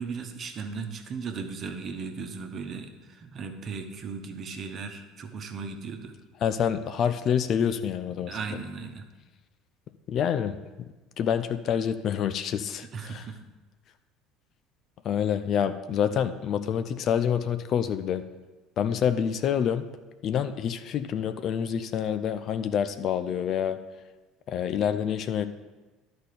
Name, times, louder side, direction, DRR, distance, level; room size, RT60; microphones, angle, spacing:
voice 1, 0.0-6.1 8.2-9.0 12.9-13.4, right 5 dB, 45° right, 5 dB, 1.1 m, -37 dB
voice 2, 6.4-8.4 10.1-10.6 11.2-13.2 15.0-18.2 18.8-19.8 20.2-23.8 24.5-25.4, left 8 dB, 50° left, 11 dB, 0.5 m, -27 dB
11.0 x 4.3 x 6.7 m, 1.2 s
hypercardioid pair, 70°, 0 cm